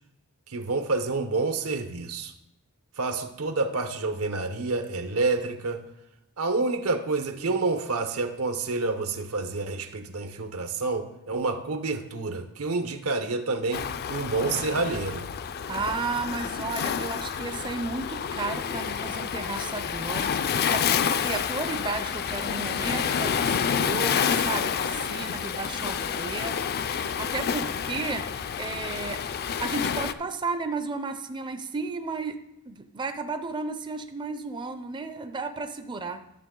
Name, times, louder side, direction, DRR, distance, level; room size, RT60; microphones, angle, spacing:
voice 1, 0.5-2.3 3.0-5.9 6.4-15.3, right 3 dB, 80° right, 8 dB, 0.9 m, -28 dB
Waves surf, 13.7-30.1, left 7 dB, 45° left, 0.4 m, -29 dB
voice 2, 15.7-28.3 28.6-29.2 29.6-32.4 32.7-36.2, right 3 dB, 20° right, 8 dB, 0.4 m, -33 dB
12.0 x 6.8 x 3.8 m, 0.88 s
head